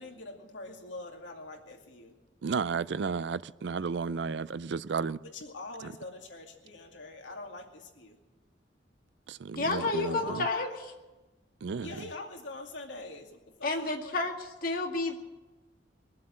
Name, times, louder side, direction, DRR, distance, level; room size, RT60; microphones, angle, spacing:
voice 1, 0.0-2.1 5.2-8.2 9.9-10.7 11.8-14.1, left 2 dB, 85° left, 2.5 m, -44 dB
voice 2, 2.4-5.2 5.8-5.9 9.3-10.5 11.6-12.1, right 5 dB, 70° right, 0.4 m, -33 dB
voice 3, 9.6-10.7 13.6-15.2, left 3 dB, 50° left, 1.9 m, -30 dB
22.0 x 7.6 x 7.7 m
head